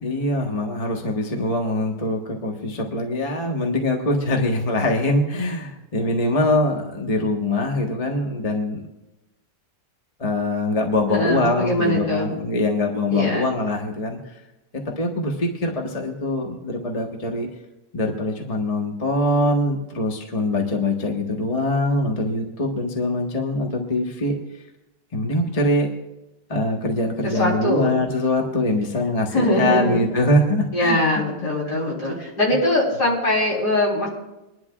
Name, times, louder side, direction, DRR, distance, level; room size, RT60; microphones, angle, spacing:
voice 1, 0.0-8.8 10.2-14.2 15.0-17.5 17.9-24.4 25.1-25.9 26.5-31.2 31.6-31.8, left 1 dB, 25° left, 1 dB, 1.2 m, -23 dB
voice 2, 11.1-12.3 13.1-13.4 27.3-27.9 29.3-30.1 30.7-34.1, left 1 dB, 65° left, -3 dB, 4.3 m, -22 dB
23.5 x 11.5 x 2.4 m, 0.99 s
omnidirectional pair, 1.9 m